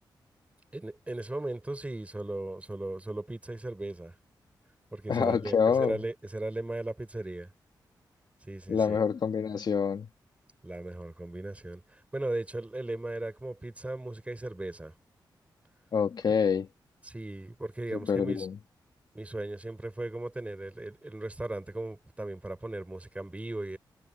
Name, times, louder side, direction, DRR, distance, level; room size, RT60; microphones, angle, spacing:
voice 1, 0.7-4.1 4.9-7.5 8.4-9.0 10.6-14.9 17.0-18.5 19.1-23.8, right 2 dB, 15° right, 6.9 m, -37 dB
voice 2, 5.1-6.0 8.7-10.1 15.9-16.7 17.9-18.6, left 6 dB, 60° left, 1.7 m, -26 dB
cardioid pair, 90°, 8 cm